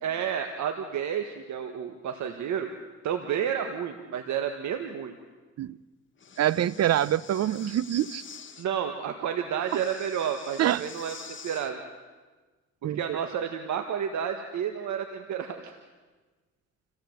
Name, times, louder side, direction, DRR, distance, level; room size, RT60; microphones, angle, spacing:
voice 1, 0.0-2.7 3.0-5.1 8.6-11.1 11.4-11.8 12.8-15.8, right 8 dB, 70° right, 5 dB, 1.7 m, -31 dB
Breathing, 6.2-8.7 9.6-11.7, left 6 dB, 40° left, 1.6 m, -46 dB
voice 2, 6.4-8.2 9.7-9.8 10.6-10.8 12.8-13.2, right 11 dB, 55° right, 19 dB, 0.7 m, -25 dB
28.0 x 16.5 x 8.1 m, 1.3 s
cardioid pair, 90°, 30 cm